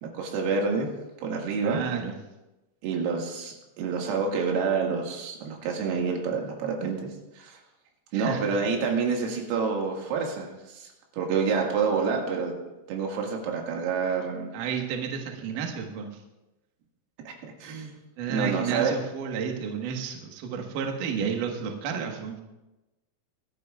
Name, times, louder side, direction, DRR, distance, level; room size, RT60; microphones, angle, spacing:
voice 1, 0.0-0.9 1.2-1.8 2.8-7.0 7.4-7.6 8.1-10.9 11.2-12.5 12.9-14.5 17.3-17.9 18.3-18.9, right 5 dB, 85° right, 0 dB, 4.6 m, -28 dB
voice 2, 1.6-2.1 8.1-8.6 14.5-16.2 18.2-22.4, right 7 dB, 70° right, 2 dB, 2.1 m, -31 dB
24.0 x 12.0 x 2.4 m, 1.0 s
omnidirectional pair, 6.0 m